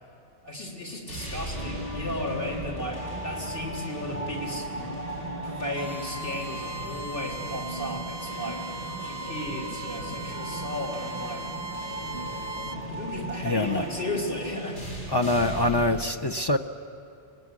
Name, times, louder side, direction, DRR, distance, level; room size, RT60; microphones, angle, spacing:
voice 1, 0.4-4.7 5.4-11.4 12.9-14.8, left 1 dB, 50° left, -1 dB, 3.8 m, -35 dB
sound 1, 1.1-16.1, right 1 dB, 75° left, 8.0 m, -39 dB
sound 2, 1.5-14.6, right 1 dB, 10° left, 1.4 m, -39 dB
Bowed string instrument, 5.7-12.8, right 2 dB, 45° right, 0.8 m, -39 dB
voice 2, 13.4-13.8 15.1-16.6, left 2 dB, 30° left, 7 dB, 0.5 m, -24 dB
25.0 x 18.0 x 9.6 m, 2.5 s
omnidirectional pair, 1.2 m